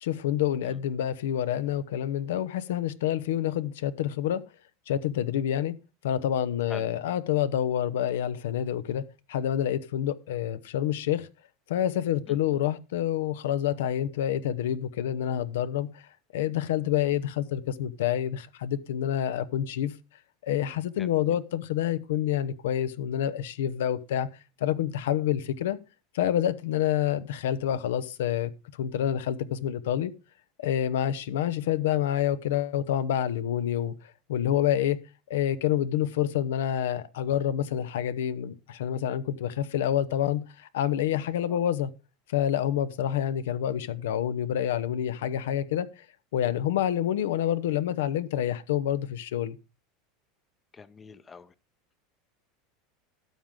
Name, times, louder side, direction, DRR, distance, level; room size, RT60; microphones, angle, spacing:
voice 1, 0.0-4.4 4.9-5.7 6.0-11.3 11.7-16.0 16.3-19.9 20.4-24.3 24.6-25.8 26.1-28.5 28.8-30.1 30.6-33.9 34.3-35.0 35.3-41.9 42.3-46.0 46.3-49.6, left 10 dB, 85° left, 0.8 m, -28 dB
voice 2, 20.9-21.4 41.5-41.6 50.7-51.5, left 5 dB, 20° left, 0.6 m, -45 dB
12.5 x 7.4 x 3.7 m
supercardioid pair, 120°, 0 cm